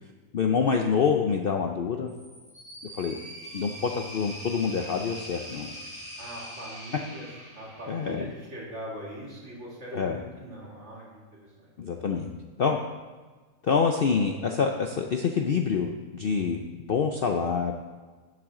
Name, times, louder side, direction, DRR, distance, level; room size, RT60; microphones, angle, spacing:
voice 1, 0.3-2.1 3.0-3.2 3.5-5.7 7.9-8.3 9.9-10.2 11.8-12.3 12.6-12.8 13.6-16.6 16.9-17.7, left 6 dB, 55° left, 3 dB, 0.7 m, -26 dB
sound 1, 2.1-8.3, equal, 25° right, 2.6 m, -43 dB
voice 2, 6.2-7.3 7.6-11.7, right 1 dB, 50° right, -5 dB, 2.9 m, -41 dB
12.0 x 7.5 x 3.8 m, 1.4 s
omnidirectional pair, 1.5 m